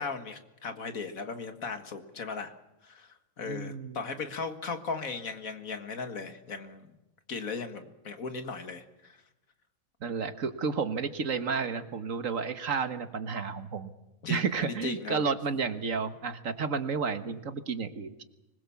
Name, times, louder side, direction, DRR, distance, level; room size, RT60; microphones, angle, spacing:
voice 1, 0.0-2.5 2.8-6.9 7.3-9.2 14.2-15.3, left 4 dB, 70° left, 8 dB, 2.2 m, -37 dB
voice 2, 3.4-4.0 10.0-13.9 14.3-18.2, right 5 dB, 65° right, 10 dB, 1.7 m, -31 dB
25.0 x 21.0 x 7.2 m, 0.96 s
omnidirectional pair, 1.5 m